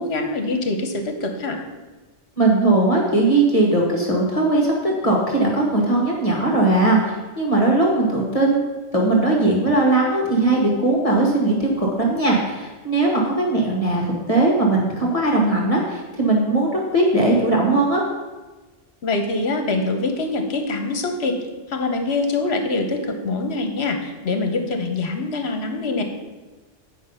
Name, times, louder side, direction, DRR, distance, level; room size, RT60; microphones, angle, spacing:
voice 1, 0.0-1.6 19.0-21.4 21.7-26.0, left 3 dB, 65° left, 5 dB, 1.3 m, -24 dB
voice 2, 2.4-8.7 8.9-18.0, right 2 dB, 30° left, -2 dB, 1.5 m, -19 dB
8.6 x 5.4 x 5.5 m, 1.2 s
omnidirectional pair, 1.2 m